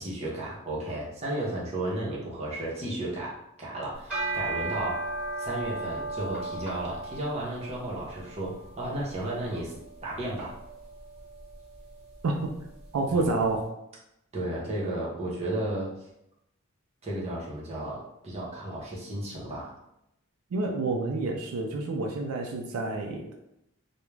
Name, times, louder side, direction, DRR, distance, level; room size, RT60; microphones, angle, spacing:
voice 1, 0.0-5.0 5.4-9.7 10.0-10.5 13.0-13.2 14.3-15.9 17.0-19.7, right 1 dB, 30° right, -5 dB, 0.6 m, -33 dB
sound 1, 3.9-13.3, right 2 dB, 5° right, 1.1 m, -37 dB
voice 2, 12.9-13.7 20.5-23.3, right 3 dB, 85° right, 2 dB, 0.4 m, -28 dB
2.3 x 2.0 x 3.1 m, 0.82 s
head